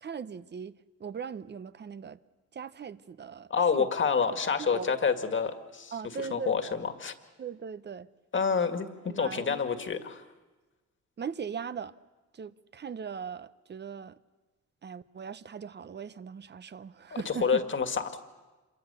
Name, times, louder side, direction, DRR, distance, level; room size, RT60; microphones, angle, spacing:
voice 1, 0.0-2.2 2.5-3.9 4.3-5.0 5.9-6.6 7.4-8.1 8.5-8.7 9.0-9.6 11.2-11.9 12.3-14.2 14.8-17.6, right 6 dB, 35° right, 0.8 m, -39 dB
voice 2, 3.5-7.1 8.3-10.2 17.3-18.2, left 6 dB, 40° left, 1.9 m, -28 dB
27.0 x 23.5 x 6.9 m
cardioid pair, 90°, 30 cm